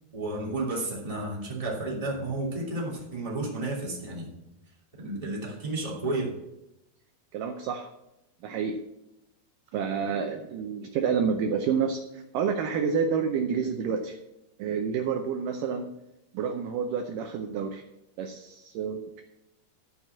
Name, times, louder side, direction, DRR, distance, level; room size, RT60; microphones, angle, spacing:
voice 1, 0.1-4.3 5.0-6.3, right 2 dB, 10° right, -5 dB, 2.2 m, -32 dB
voice 2, 7.3-7.9 8.4-8.8 9.7-14.2 14.6-15.9 16.3-17.8 18.2-19.2, right 6 dB, 80° right, 5 dB, 1.9 m, -29 dB
14.0 x 5.4 x 7.3 m, 0.93 s
omnidirectional pair, 4.7 m